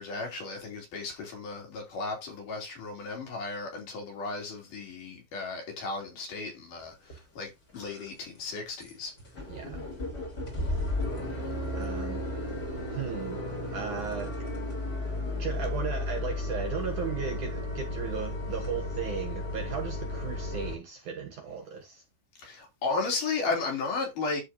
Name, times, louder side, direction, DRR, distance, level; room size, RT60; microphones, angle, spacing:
voice 1, 0.0-6.9 7.4-7.5 7.7-9.1 22.4-24.4, left 3 dB, 50° left, 4.2 m, -34 dB
sound 1, 7.1-7.2 7.7-8.1 8.4-8.5 8.8-8.9 9.2-20.7, left 2 dB, 25° left, 3.7 m, -34 dB
voice 2, 9.5-9.8 11.7-12.2 12.9-13.4 13.7-14.3 15.4-22.0, right 7 dB, 65° right, 2.1 m, -36 dB
12.0 x 5.2 x 2.7 m
omnidirectional pair, 4.9 m